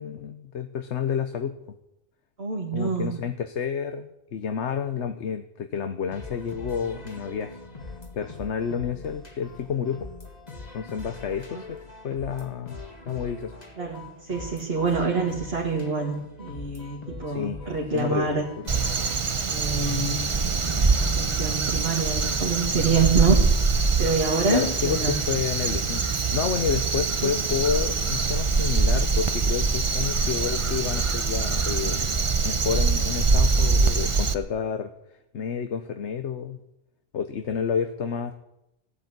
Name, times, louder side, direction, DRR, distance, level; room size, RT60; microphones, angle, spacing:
voice 1, 0.0-1.6 2.7-7.5 8.1-10.1 10.7-12.8 13.1-13.5 17.3-17.6 17.9-18.8 24.5-32.0 32.4-34.9 35.3-36.6 37.1-38.3, left 7 dB, 90° left, 8 dB, 1.2 m, -30 dB
voice 2, 2.4-3.1 11.5-11.6 13.8-18.4 19.4-23.4 24.0-25.2 27.2-27.3, right 4 dB, 60° right, -1 dB, 2.2 m, -26 dB
sound 1, 6.1-19.2, left 3 dB, 35° left, 2.0 m, -42 dB
Crow, 18.7-34.3, right 4 dB, 30° right, 0.8 m, -24 dB
16.0 x 8.3 x 9.6 m, 0.87 s
omnidirectional pair, 1.2 m